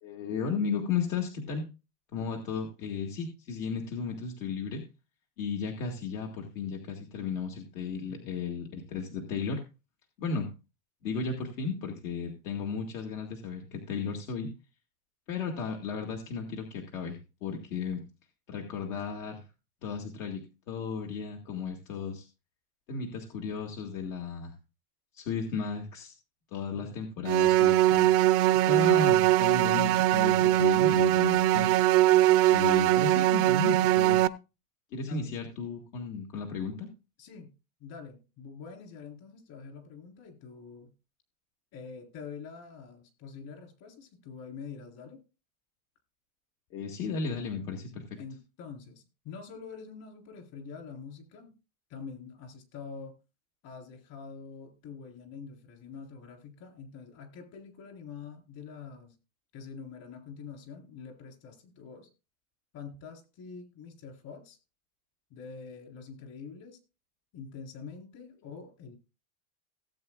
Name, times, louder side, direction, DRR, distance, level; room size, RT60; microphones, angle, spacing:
voice 1, 0.0-1.7 2.1-4.8 5.4-9.6 10.2-10.5 11.0-14.5 15.3-18.0 18.5-19.4 19.8-22.3 22.9-24.5 25.1-26.1 26.5-28.2 28.5-31.7 32.5-34.2 34.9-36.9 46.7-48.0, left 5 dB, 70° left, 2 dB, 2.1 m, -34 dB
voice 2, 8.0-8.4 26.7-27.0 35.1-35.4 37.2-37.5 37.8-40.9 41.7-45.2 48.2-51.5 51.9-53.2 53.6-59.1 59.5-62.1 62.7-64.6 65.3-66.8 67.3-68.9, left 5 dB, 45° left, 3 dB, 4.0 m, -45 dB
sound 1, 27.3-34.3, right 15 dB, 35° right, 0.5 m, -22 dB
17.5 x 8.3 x 2.4 m, 0.29 s
supercardioid pair, 135°, 42 cm